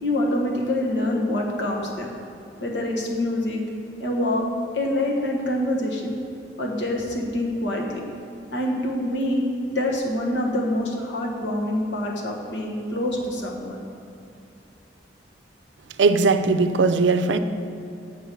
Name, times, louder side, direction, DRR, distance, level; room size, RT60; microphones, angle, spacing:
voice 1, 0.0-2.1 2.6-3.6 4.0-4.4 4.7-6.1 6.6-8.0 8.5-9.4 9.7-13.8, left 1 dB, 85° left, -1 dB, 1.4 m, -25 dB
voice 2, 16.0-17.4, right 4 dB, 85° right, 10 dB, 0.5 m, -19 dB
7.5 x 4.6 x 7.0 m, 2.7 s
head